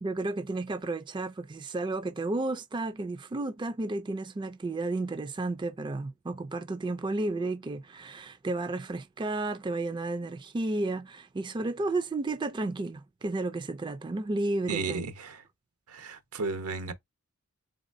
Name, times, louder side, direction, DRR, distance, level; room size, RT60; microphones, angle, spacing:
voice 1, 0.0-15.1, right 2 dB, 20° right, 0.3 m, -32 dB
voice 2, 14.7-15.4 15.9-16.9, right 3 dB, 90° right, 1.0 m, -34 dB
4.0 x 4.0 x 2.6 m
head